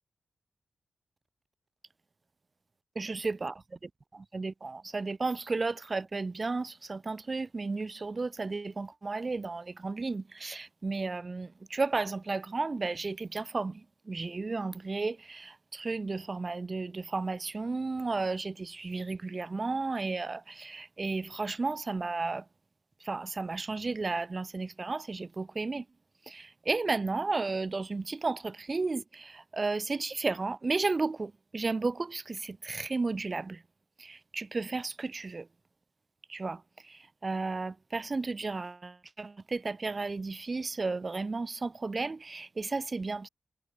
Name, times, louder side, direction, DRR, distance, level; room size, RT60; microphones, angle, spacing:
voice 1, 3.0-3.5 4.1-22.5 23.0-25.9 26.3-33.6 34.0-35.5 36.3-43.3, right 3 dB, 40° right, 5.5 m, -33 dB
wide cardioid pair, 85°, 0 cm